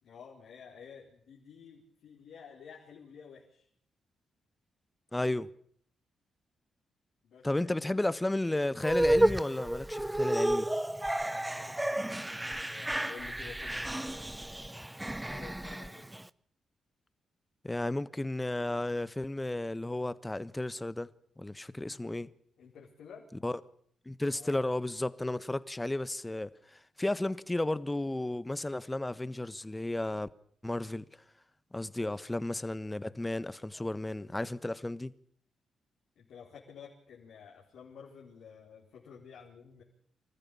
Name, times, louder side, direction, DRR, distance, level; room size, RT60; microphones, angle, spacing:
voice 1, 0.0-3.7 7.2-8.0 11.5-14.4 15.2-16.0 22.6-23.3 24.3-24.5 32.0-32.1 33.7-34.3 36.2-39.8, left 6 dB, 70° left, 4.4 m, -52 dB
voice 2, 5.1-5.5 7.4-10.7 17.6-21.1 21.4-22.3 23.4-23.6 24.0-30.3 30.6-31.0 31.7-35.1, left 1 dB, 15° left, 1.3 m, -33 dB
sound 1, 8.8-16.2, right 1 dB, 10° right, 0.8 m, -31 dB
26.0 x 14.5 x 8.6 m
hypercardioid pair, 40°, 0 cm